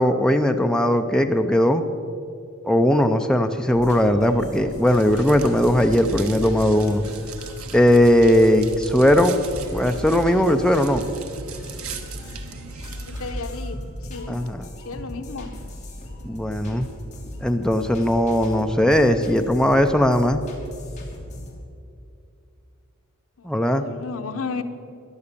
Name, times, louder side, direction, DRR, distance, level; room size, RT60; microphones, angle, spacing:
voice 1, 0.0-1.8 2.6-7.1 7.7-9.4 9.7-11.0 14.3-14.7 16.2-16.9 17.4-20.4 23.4-23.8, left 1 dB, 5° left, 5 dB, 0.5 m, -19 dB
sound 1, 3.7-21.6, equal, 35° left, 2.6 m, -37 dB
sound 2, 4.8-13.4, right 5 dB, 80° right, 1.1 m, -39 dB
voice 2, 13.0-13.8 14.1-14.4 14.8-15.5 23.4-24.6, left 4 dB, 75° left, 9 dB, 0.9 m, -33 dB
14.5 x 10.5 x 6.8 m, 2.5 s
head